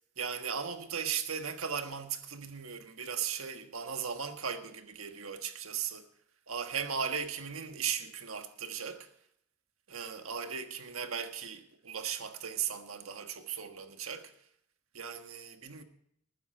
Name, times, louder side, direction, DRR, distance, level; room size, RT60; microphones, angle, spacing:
voice 1, 0.2-6.1 6.5-9.1 9.9-14.3 14.9-15.8, right 7 dB, 80° right, 1.4 m, -37 dB
19.5 x 9.8 x 4.4 m
head